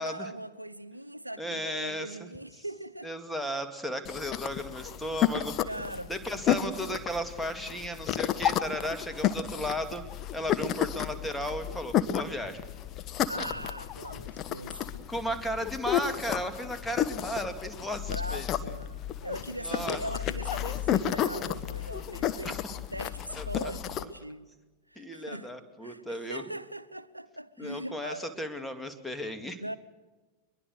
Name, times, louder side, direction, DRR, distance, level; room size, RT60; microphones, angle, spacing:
voice 1, 0.0-3.1 5.7-6.1 6.4-7.0 13.3-14.8 17.9-22.6 22.9-24.5 24.9-25.5 25.8-28.4 29.6-29.8, right 1 dB, 85° right, 0.9 m, -40 dB
voice 2, 1.4-2.3 2.6-2.7 3.0-5.6 6.1-10.0 10.3-12.6 15.1-18.5 19.6-20.0 22.4-22.6 23.4-23.7 25.0-26.4 27.6-29.6, equal, 5° left, 2.3 m, -35 dB
sound 1, 4.0-24.0, left 10 dB, 35° left, 1.2 m, -32 dB
23.0 x 22.5 x 6.5 m
figure-of-eight pair, 90°, 0 cm